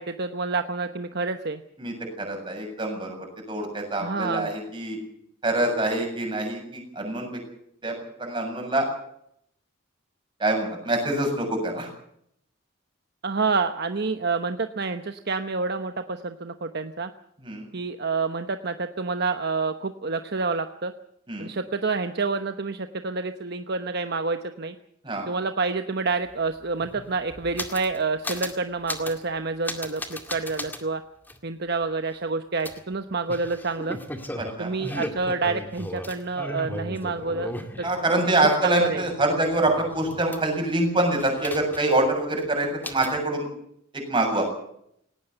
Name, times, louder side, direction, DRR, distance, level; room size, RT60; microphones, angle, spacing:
voice 1, 0.0-1.6 4.0-4.5 13.2-17.1 17.7-20.9 21.4-24.7 25.3-31.0 31.4-34.0 34.6-37.5 37.8-37.9 38.6-39.1, right 4 dB, 50° right, 8 dB, 1.0 m, -28 dB
voice 2, 1.8-3.2 3.5-5.0 5.4-7.4 7.8-8.9 10.4-11.9 17.4-17.7 21.3-21.5 25.0-25.3 34.4-35.0 37.8-43.5 44.1-44.5, right 2 dB, 25° right, 2 dB, 7.4 m, -25 dB
sound 1, 26.3-26.4 26.6-28.0 28.2-28.6 28.9-29.2 29.6-30.8 31.3-31.4 32.6-38.4 38.7-40.7 41.2-42.1 42.3-42.4 42.8-43.2, left 1 dB, 10° left, 2.0 m, -36 dB
18.5 x 18.0 x 8.0 m, 0.72 s
head